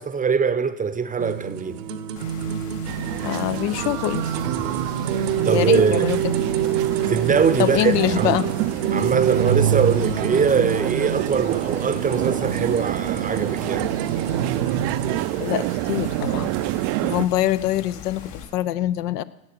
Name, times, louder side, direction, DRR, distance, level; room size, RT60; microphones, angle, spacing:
voice 1, 0.0-1.8 5.4-6.1 7.1-8.4 8.9-13.9, right 6 dB, 15° right, 0.7 m, -22 dB
sound 1, 1.2-15.2, right 8 dB, 80° right, 1.2 m, -26 dB
sound 2, 2.2-18.5, left 7 dB, 60° left, 3.6 m, -41 dB
sound 3, 2.9-17.3, right 18 dB, 55° right, 0.5 m, -28 dB
voice 2, 3.2-4.4 5.5-6.3 7.6-8.5 15.4-19.2, left 13 dB, 80° left, 0.7 m, -24 dB
18.0 x 7.6 x 6.0 m
hypercardioid pair, 90°, 47 cm